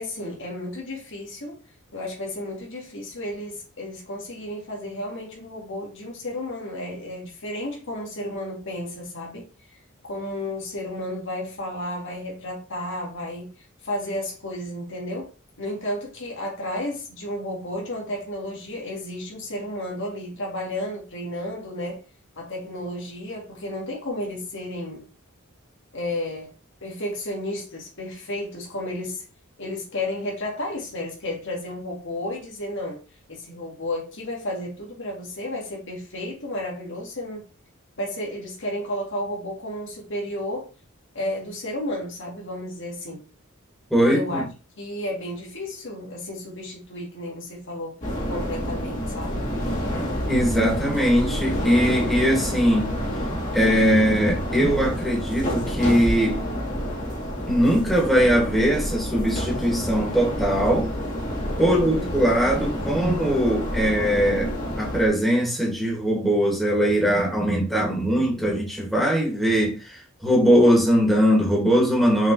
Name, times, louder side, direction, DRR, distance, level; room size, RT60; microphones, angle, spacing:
voice 1, 0.0-1.6 1.9-9.5 10.0-13.5 13.8-15.3 15.6-22.0 22.4-25.1 25.9-26.5 26.8-29.2 29.6-33.0 33.3-37.5 38.0-40.7 41.1-43.3 44.0-44.4 44.8-48.0 48.3-49.5 61.6-62.1, left 1 dB, 65° left, 2.2 m, -32 dB
voice 2, 43.9-44.5 50.3-52.9 53.5-56.4 57.5-60.9 61.6-72.3, equal, ahead, 2.5 m, -21 dB
sound 1, 48.0-65.1, equal, 35° left, 2.5 m, -28 dB
6.3 x 4.6 x 3.4 m
head